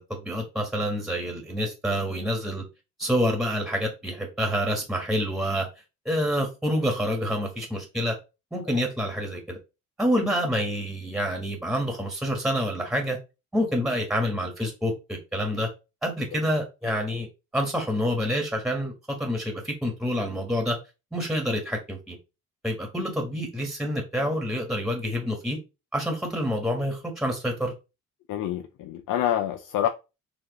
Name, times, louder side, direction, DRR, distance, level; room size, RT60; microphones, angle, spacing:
voice 1, 0.0-2.6 3.0-5.7 6.0-8.2 8.5-9.6 10.0-13.2 13.5-15.7 16.0-17.3 17.5-20.8 21.1-22.2 22.6-25.6 25.9-27.7, equal, ahead, 1.4 m, -27 dB
voice 2, 28.3-29.9, left 11 dB, 80° left, 0.6 m, -27 dB
4.8 x 2.9 x 3.0 m
cardioid pair, 90°, 30 cm